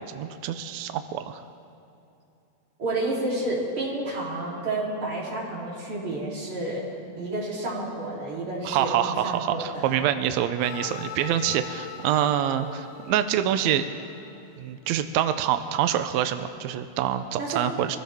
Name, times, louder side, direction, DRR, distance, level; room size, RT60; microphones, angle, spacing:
voice 1, 0.0-1.4 8.6-13.9 14.6-18.0, right 10 dB, 90° right, 9 dB, 1.6 m, -26 dB
voice 2, 2.8-6.8 7.2-10.1 17.4-17.7, right 2 dB, 40° right, -6 dB, 4.1 m, -30 dB
sound 1, 10.6-14.6, left 9 dB, 80° left, 2.3 m, -41 dB
24.0 x 15.5 x 3.5 m, 2.7 s
omnidirectional pair, 3.9 m